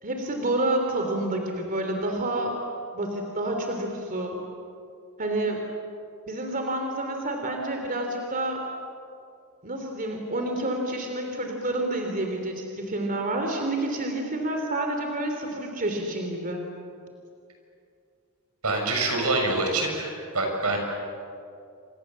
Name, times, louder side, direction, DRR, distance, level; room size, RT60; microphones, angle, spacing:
voice 1, 0.0-2.5 2.9-4.4 5.2-5.6 6.3-8.6 9.6-16.6, right 1 dB, 40° right, 3 dB, 3.3 m, -29 dB
voice 2, 18.6-20.8, right 2 dB, 85° right, 2 dB, 6.9 m, -25 dB
28.5 x 26.5 x 7.5 m, 2.4 s
head